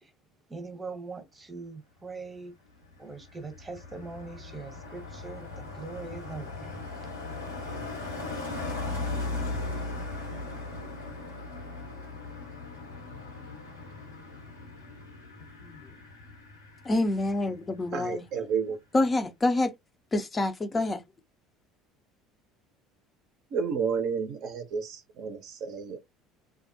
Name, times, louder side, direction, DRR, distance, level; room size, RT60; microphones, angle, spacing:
voice 1, 0.5-2.5 3.0-6.7, right 3 dB, 20° right, 0.8 m, -41 dB
Car passing by, 2.8-17.5 17.8-18.1, left 2 dB, 90° left, 1.0 m, -38 dB
voice 2, 16.9-18.2 18.9-19.7 20.1-21.0, left 2 dB, 25° left, 0.4 m, -26 dB
voice 3, 17.9-18.8 23.5-26.1, right 6 dB, 55° right, 0.5 m, -31 dB
2.3 x 2.0 x 2.6 m
figure-of-eight pair, 60°, 0 cm